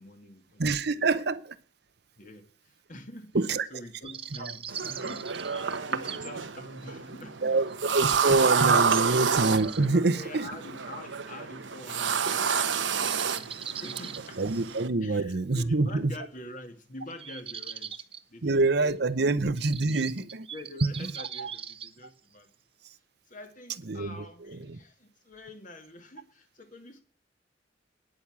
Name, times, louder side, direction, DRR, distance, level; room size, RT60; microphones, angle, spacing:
voice 1, 0.0-0.6 1.0-1.2 2.2-3.4 3.7-7.4 8.0-8.1 8.9-9.2 9.8-14.4 15.0-19.3 20.5-22.5 23.3-27.0, left 1 dB, 45° left, 5 dB, 2.2 m, -46 dB
voice 2, 0.6-1.5 3.3-3.7 7.4-10.5 14.4-16.1 18.4-20.5 21.4-21.5 23.9-24.3 24.7-24.8, right 3 dB, 60° right, 13 dB, 0.8 m, -26 dB
sound 1, 4.0-6.3 6.8-6.9 7.7-7.8 8.9-9.9 12.2-12.4 12.6-12.7 13.0-14.8 17.1-18.2 18.9-19.0 19.6-21.9, right 8 dB, 30° right, 0.8 m, -41 dB
sound 2, 4.7-14.9, right 6 dB, 85° right, 1.1 m, -29 dB
10.0 x 8.6 x 7.3 m, 0.43 s
head